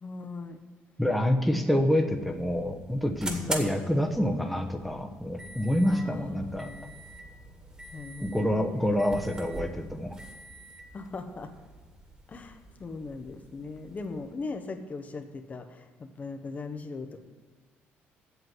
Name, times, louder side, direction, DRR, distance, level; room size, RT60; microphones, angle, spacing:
voice 1, 0.0-0.6 3.2-3.6 5.9-7.0 7.9-9.2 10.9-11.5 12.3-17.2, left 4 dB, 35° left, 6 dB, 0.9 m, -39 dB
voice 2, 1.0-6.7 8.2-10.1, equal, ahead, 3 dB, 1.0 m, -27 dB
sound 1, 2.0-14.4, right 1 dB, 20° right, 1.9 m, -44 dB
8.1 x 7.4 x 7.7 m, 1.5 s
cardioid pair, 90°, 5 cm